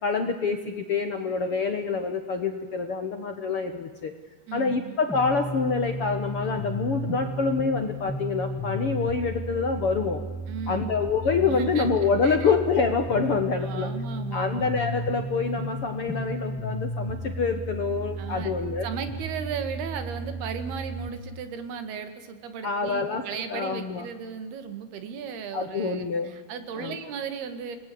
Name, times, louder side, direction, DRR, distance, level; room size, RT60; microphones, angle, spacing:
voice 1, 0.0-4.1 4.5-10.2 10.7-13.9 14.3-18.9 22.6-23.2 23.5-24.0 25.5-26.3 26.8-26.9, left 5 dB, 55° left, 7 dB, 1.6 m, -26 dB
voice 2, 4.5-4.9 10.5-11.1 11.4-11.9 12.2-12.5 13.6-14.7 18.2-18.5 18.8-27.8, right 6 dB, 85° right, 10 dB, 4.0 m, -36 dB
sound 1, 5.1-21.1, right 1 dB, ahead, 0.8 m, -34 dB
28.0 x 20.5 x 8.6 m, 1.3 s
omnidirectional pair, 4.4 m